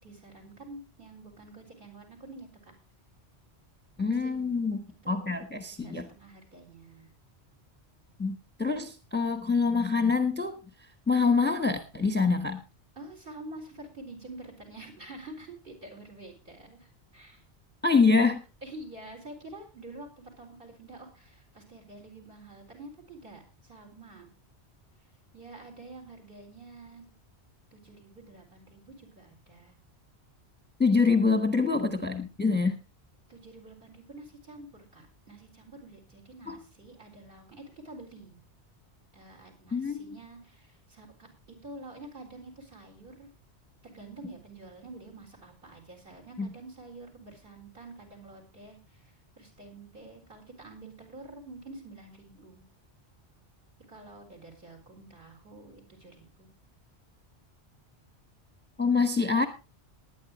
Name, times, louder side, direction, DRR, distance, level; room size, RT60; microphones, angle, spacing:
voice 1, 0.0-2.7 4.0-5.4 5.7-7.1 13.0-17.4 18.6-24.3 25.3-27.1 27.7-29.8 31.1-31.3 33.3-38.4 39.1-43.3 43.8-52.7 53.9-56.5, right 2 dB, 50° right, 4 dB, 4.5 m, -48 dB
voice 2, 4.0-6.1 8.2-10.6 11.1-12.6 17.8-18.4 30.8-32.8 36.5-36.6 39.7-40.2 46.4-46.5 58.8-59.5, left 4 dB, 10° left, 7 dB, 1.1 m, -25 dB
20.5 x 9.4 x 3.0 m, 0.30 s
omnidirectional pair, 1.1 m